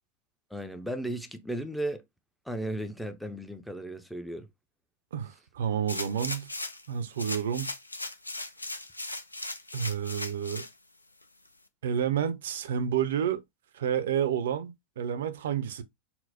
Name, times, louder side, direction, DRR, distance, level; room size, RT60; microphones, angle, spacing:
voice 1, 0.5-2.0 2.5-4.5, right 1 dB, ahead, 0.5 m, -35 dB
voice 2, 5.1-6.5 6.9-7.7 9.7-10.7 11.8-13.4 13.7-15.8, right 8 dB, 60° right, 0.5 m, -30 dB
sound 1, 5.9-6.9 7.2-10.7 11.2-11.3, left 2 dB, 80° left, 0.4 m, -37 dB
4.3 x 2.0 x 3.9 m
figure-of-eight pair, 90°, 0 cm